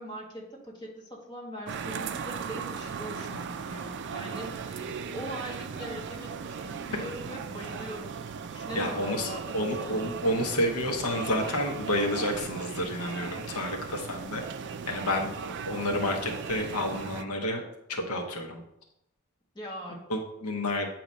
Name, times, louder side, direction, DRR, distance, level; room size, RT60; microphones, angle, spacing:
voice 1, 0.0-4.9 5.1-8.2 8.5-10.3 19.5-20.1, equal, 20° left, -3 dB, 1.6 m, -41 dB
sound 1, 1.7-17.2, right 6 dB, 55° right, 0.4 m, -37 dB
voice 2, 8.7-14.4 14.9-17.6 17.9-18.6 20.1-20.9, left 1 dB, 90° left, 2 dB, 0.9 m, -30 dB
8.4 x 2.9 x 5.2 m, 0.82 s
head